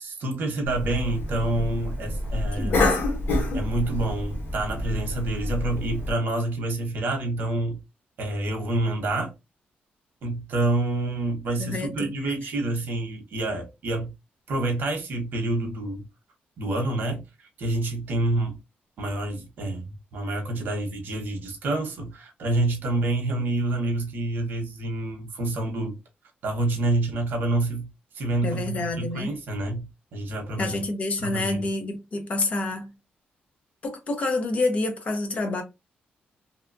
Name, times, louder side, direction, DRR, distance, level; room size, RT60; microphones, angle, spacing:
voice 1, 0.0-2.8 3.5-7.8 8.2-9.3 10.2-14.1 14.5-16.0 16.6-17.2 17.6-18.6 19.0-26.0 26.4-27.9 28.1-29.9 30.1-30.8 31.2-31.6, right 2 dB, 65° right, 0.9 m, -27 dB
Cough, 0.7-6.1, left 2 dB, 75° left, 0.9 m, -28 dB
voice 2, 2.5-2.9 11.6-12.3 28.4-29.3 30.6-32.9 33.8-35.6, left 2 dB, 40° left, 0.6 m, -28 dB
2.7 x 2.2 x 2.5 m
wide cardioid pair, 165°, 4 cm